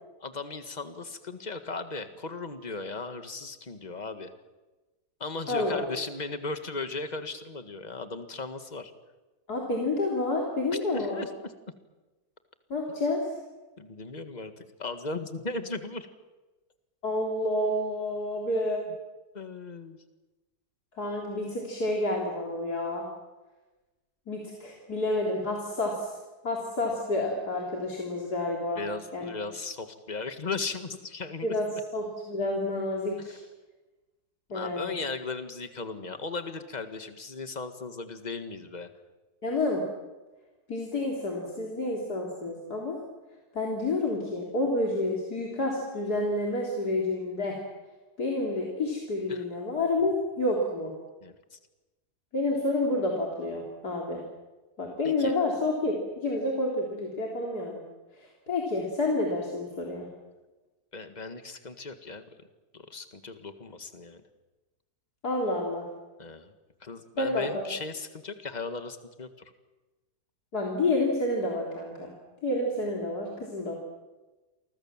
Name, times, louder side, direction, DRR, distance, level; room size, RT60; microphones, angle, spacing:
voice 1, 0.2-4.3 5.2-8.9 10.7-11.5 13.8-16.1 19.3-20.0 28.8-31.5 33.2-33.3 34.5-38.9 49.3-49.4 51.2-51.6 55.0-55.3 60.9-62.2 62.7-64.2 66.2-66.5 66.8-69.3, left 3 dB, 25° left, 8 dB, 1.8 m, -37 dB
voice 2, 5.5-5.9 9.5-11.3 12.7-13.3 17.0-18.8 21.0-23.0 24.3-26.2 26.4-28.8 29.1-29.3 31.4-31.7 31.9-33.4 34.5-34.9 39.4-39.8 40.7-43.0 43.5-47.6 48.2-50.9 52.3-54.2 54.8-57.8 58.1-60.1 65.2-65.8 67.2-67.7 70.5-72.1 72.4-73.7, left 2 dB, 70° left, -1 dB, 4.0 m, -29 dB
29.5 x 24.0 x 7.4 m, 1.2 s
omnidirectional pair, 1.7 m